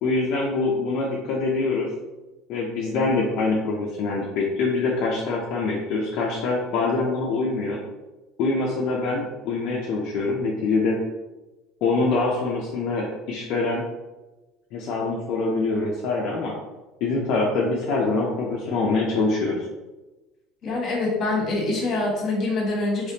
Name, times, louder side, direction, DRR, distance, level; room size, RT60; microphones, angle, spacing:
voice 1, 0.0-1.9 2.5-7.8 8.4-11.0 11.8-13.8 14.7-16.5 17.0-19.6, left 3 dB, 60° left, -3 dB, 0.6 m, -24 dB
voice 2, 20.6-23.1, left 2 dB, 35° left, -2 dB, 1.4 m, -25 dB
3.3 x 3.2 x 2.8 m, 1.1 s
cardioid pair, 130°, 0 cm